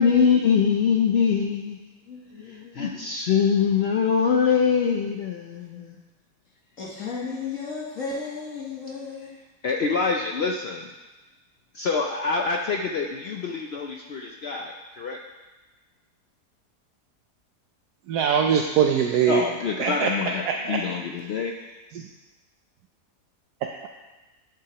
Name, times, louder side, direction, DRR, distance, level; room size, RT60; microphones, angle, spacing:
voice 1, 0.0-1.8 2.5-5.9 9.6-10.9 11.7-15.2 19.3-21.5, left 6 dB, 75° left, 1 dB, 0.5 m, -24 dB
voice 2, 2.1-2.8 5.7-5.9 6.8-9.3, left 4 dB, 55° left, -4 dB, 1.4 m, -34 dB
voice 3, 18.1-19.4 19.8-20.1 20.5-20.8 21.9-22.1, right 7 dB, 80° right, 3 dB, 1.1 m, -22 dB
10.5 x 7.5 x 2.9 m, 1.2 s
omnidirectional pair, 1.7 m